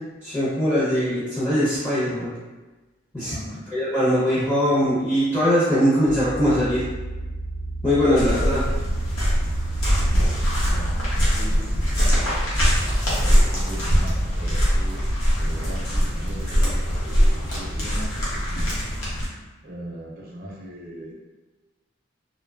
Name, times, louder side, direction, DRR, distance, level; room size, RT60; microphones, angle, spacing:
voice 1, 0.2-2.3 3.1-3.3 3.7-6.9 7.8-8.7, equal, 15° left, -12 dB, 0.7 m, -21 dB
voice 2, 3.3-3.6 9.9-10.3 10.6-10.9 11.3-12.9 13.1-15.1 15.4-18.8 19.6-21.1, equal, 50° right, -3 dB, 0.5 m, -39 dB
sound 1, 6.1-15.4, right 2 dB, 65° left, 0.9 m, -32 dB
sound 2, 8.1-19.3, equal, 90° left, 0.9 m, -22 dB
2.9 x 2.2 x 2.3 m, 1.2 s
head